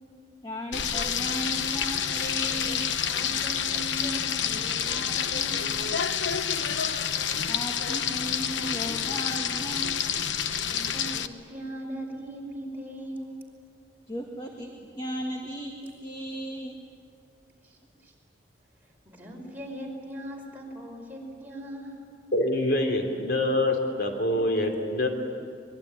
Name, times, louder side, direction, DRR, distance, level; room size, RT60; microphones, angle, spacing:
voice 1, 0.4-2.9 7.5-10.0 14.1-16.8, equal, 25° left, 1 dB, 1.8 m, -35 dB
Frying (food), 0.7-11.3, left 8 dB, 80° left, 1.0 m, -28 dB
voice 2, 3.0-5.8 10.5-13.3 17.6-18.1 18.8-22.0, right 1 dB, 10° right, -1 dB, 5.3 m, -39 dB
voice 3, 22.3-25.1, left 1 dB, 60° left, 3 dB, 3.2 m, -25 dB
24.0 x 22.0 x 9.7 m, 2.2 s
head